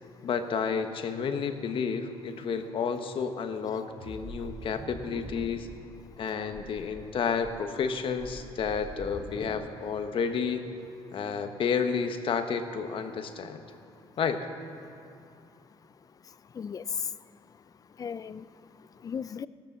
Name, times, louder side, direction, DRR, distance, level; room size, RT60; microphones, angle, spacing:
voice 1, 0.2-5.7 6.2-10.6 11.1-13.6 14.2-14.5, left 6 dB, 55° left, 7 dB, 1.2 m, -31 dB
sound 1, 3.9-5.8 6.1-6.2 6.5-7.0 7.4-9.5, equal, 5° right, 2.7 m, -44 dB
voice 2, 16.0-17.3 17.9-19.5, left 7 dB, 35° left, 17 dB, 0.4 m, -38 dB
15.5 x 13.0 x 6.8 m, 2.6 s
cardioid pair, 100°, 11 cm